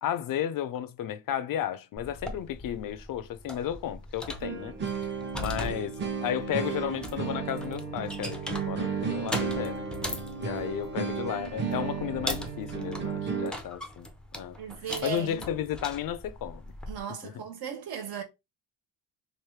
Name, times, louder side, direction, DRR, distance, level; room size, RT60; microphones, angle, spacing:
voice 1, 0.0-4.7 5.4-5.9 6.2-9.9 10.4-14.1 14.3-14.6 15.0-16.6, left 10 dB, 55° left, 0.5 m, -33 dB
sound 1, 2.0-17.0, left 1 dB, ahead, 0.5 m, -41 dB
sound 2, 4.4-13.5, right 6 dB, 30° right, 0.7 m, -33 dB
voice 2, 14.6-15.5 16.9-18.2, right 8 dB, 65° right, 1.3 m, -37 dB
3.3 x 2.5 x 4.5 m
cardioid pair, 145°, 39 cm